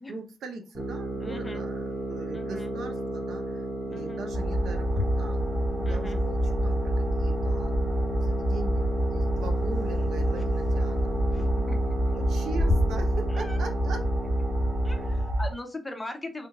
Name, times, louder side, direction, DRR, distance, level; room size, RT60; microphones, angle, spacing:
voice 1, 0.1-7.8 8.1-11.2 12.1-14.1 15.0-15.1, right 3 dB, 80° right, 5 dB, 0.7 m, -41 dB
sound 1, 0.8-15.3, right 1 dB, 45° right, 0.9 m, -34 dB
voice 2, 1.2-1.6 2.3-2.7 3.9-4.2 5.9-6.2 10.4-10.5 11.3-11.9 13.3-13.6 14.8-16.5, left 2 dB, 15° left, 5 dB, 0.6 m, -40 dB
sound 2, 4.3-15.5, equal, 10° right, 1.1 m, -27 dB
3.4 x 2.4 x 2.9 m, 0.30 s
cardioid pair, 140°, 0 cm